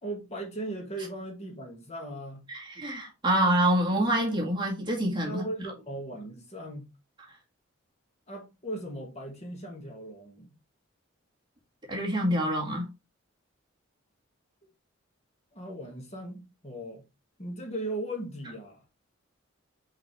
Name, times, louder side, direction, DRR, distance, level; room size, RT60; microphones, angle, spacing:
voice 1, 0.0-2.4 5.3-6.9 8.3-10.5 14.6-14.7 15.5-17.0 17.4-18.8, right 1 dB, 35° left, 1.8 m, -38 dB
voice 2, 2.5-5.4 11.9-12.9, right 1 dB, 25° right, 1.9 m, -26 dB
5.7 x 5.0 x 3.3 m
head